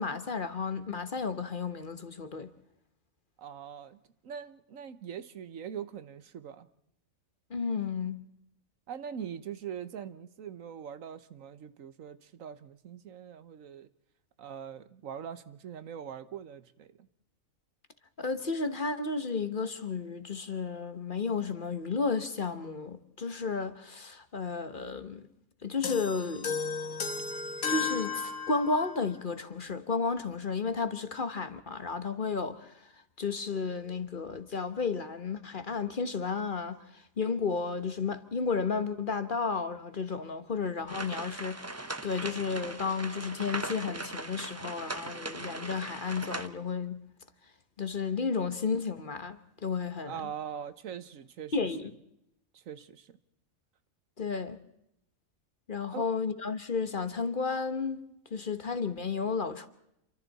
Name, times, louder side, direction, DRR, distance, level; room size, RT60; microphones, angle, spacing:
voice 1, 0.0-2.5 7.5-8.2 18.2-25.3 25.6-26.6 27.7-32.7 33.2-41.7 42.0-47.0 47.8-50.1 51.5-51.9 54.2-54.6 55.7-58.0 58.3-59.7, left 4 dB, 40° left, 1.2 m, -32 dB
voice 2, 3.4-6.7 8.9-13.9 14.4-17.1 50.0-51.9 52.5-53.1 55.9-56.1, right 8 dB, 75° right, 1.3 m, -42 dB
sound 1, 25.8-29.0, left 5 dB, 80° left, 2.1 m, -34 dB
sound 2, 40.9-46.5, right 2 dB, 15° right, 0.6 m, -39 dB
28.0 x 24.5 x 4.1 m
omnidirectional pair, 1.4 m